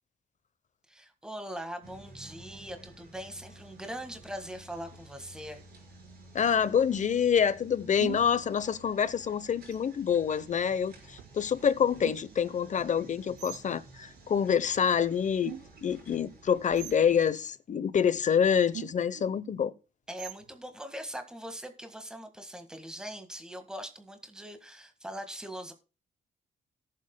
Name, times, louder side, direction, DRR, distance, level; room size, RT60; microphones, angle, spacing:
voice 1, 0.9-5.6 20.1-25.7, equal, 5° right, 1.7 m, -41 dB
sound 1, 1.8-17.3, right 2 dB, 65° right, 4.3 m, -53 dB
voice 2, 6.3-15.6 15.8-19.7, left 7 dB, 45° left, 0.8 m, -27 dB
sound 2, 8.0-8.4 9.7-10.2 11.2-11.4 12.0-12.5 13.4-13.6 15.4-15.9 16.7-17.1 18.1-18.3 18.7-19.3 20.2-20.6, right 14 dB, 80° right, 0.6 m, -43 dB
18.5 x 7.6 x 2.2 m
cardioid pair, 90°, 17 cm